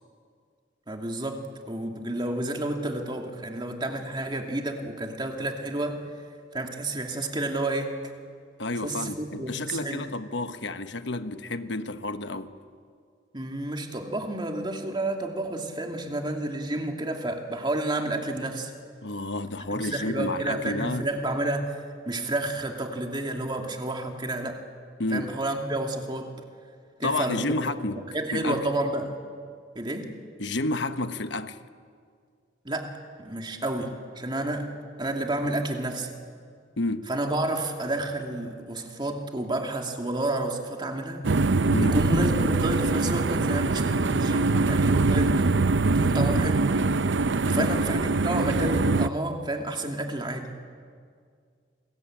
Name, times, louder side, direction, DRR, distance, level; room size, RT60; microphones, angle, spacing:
voice 1, 0.9-6.0 6.5-8.0 8.8-10.0 13.3-18.7 19.7-24.6 25.1-26.3 27.0-27.6 28.1-29.1 29.7-30.1 32.6-34.7 35.0-36.2 37.1-41.3 41.9-45.6 45.9-46.7 47.4-50.5, right 1 dB, 25° right, 2.6 m, -30 dB
voice 2, 8.6-12.6 19.0-21.1 25.0-25.3 27.0-28.7 30.4-31.6 36.8-37.1 41.7-42.0 47.6-47.8, left 2 dB, 80° left, 1.1 m, -30 dB
sound 1, 41.2-49.1, right 3 dB, 85° right, 0.7 m, -23 dB
28.0 x 21.5 x 8.9 m
head